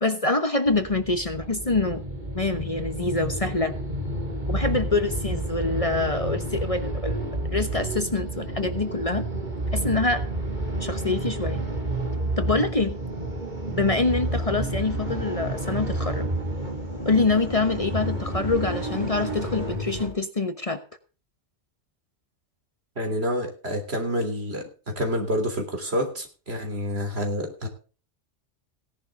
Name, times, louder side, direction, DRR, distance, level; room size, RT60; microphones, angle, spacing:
voice 1, 0.0-2.0 2.3-3.7 4.5-7.2 7.5-9.3 9.7-10.2 10.8-11.6 12.4-13.0 13.7-16.3 17.0-20.8, left 3 dB, 30° left, 9 dB, 1.2 m, -25 dB
sound 1, 0.6-20.1, right 1 dB, 40° right, 3.7 m, -30 dB
voice 2, 23.0-27.7, equal, 60° right, 4 dB, 3.7 m, -28 dB
17.5 x 11.0 x 3.7 m, 0.36 s
omnidirectional pair, 1.2 m